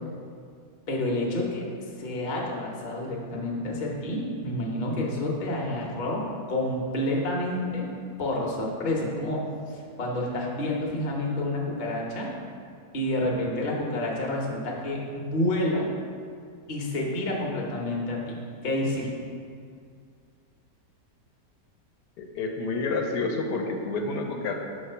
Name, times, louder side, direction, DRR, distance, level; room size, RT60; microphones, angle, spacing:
voice 1, 0.9-1.6 2.0-7.9 8.2-9.4 9.7-12.3 12.9-15.9 16.7-18.4 18.6-19.1, left 1 dB, 40° left, -2 dB, 0.7 m, -29 dB
voice 2, 22.2-24.5, left 3 dB, 80° left, 2 dB, 1.2 m, -29 dB
5.8 x 3.1 x 5.5 m, 2.2 s
omnidirectional pair, 1.9 m